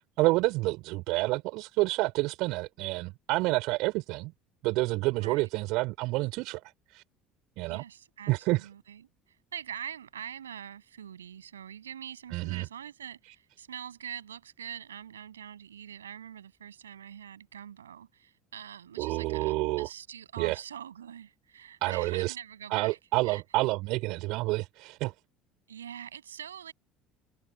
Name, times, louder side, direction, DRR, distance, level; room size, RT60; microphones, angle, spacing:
voice 1, 0.2-4.3 4.6-6.6 6.9-7.0 7.6-7.8 8.3-8.7 12.3-12.7 19.0-19.9 20.4-20.6 21.8-22.4 22.7-25.1, right 22 dB, 60° right, 3.4 m, -28 dB
voice 2, 5.2-5.5 7.7-9.1 9.5-23.0 23.2-23.4 25.7-26.7, right 9 dB, 80° right, 7.6 m, -44 dB
open air
figure-of-eight pair, 60°, 0 cm